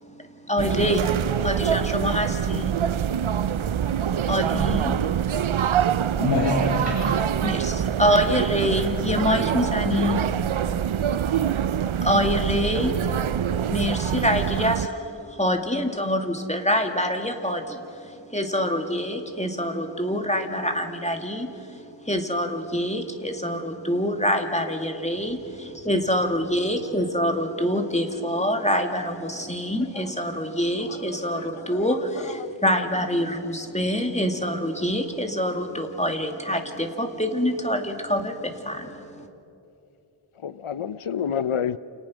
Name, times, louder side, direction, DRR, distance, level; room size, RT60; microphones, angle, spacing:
voice 1, 0.0-3.7 4.3-5.6 7.4-11.2 11.6-13.3 13.7-39.3, equal, 15° left, 2.3 m, -26 dB
sound 1, 0.6-14.9, right 9 dB, 75° right, 0.6 m, -25 dB
voice 2, 5.6-7.5 25.8-25.9, left 1 dB, 55° left, 7.1 m, -27 dB
voice 3, 30.8-32.5 40.4-41.8, left 8 dB, 80° left, 0.7 m, -31 dB
29.5 x 28.5 x 6.3 m
wide cardioid pair, 45°, 49 cm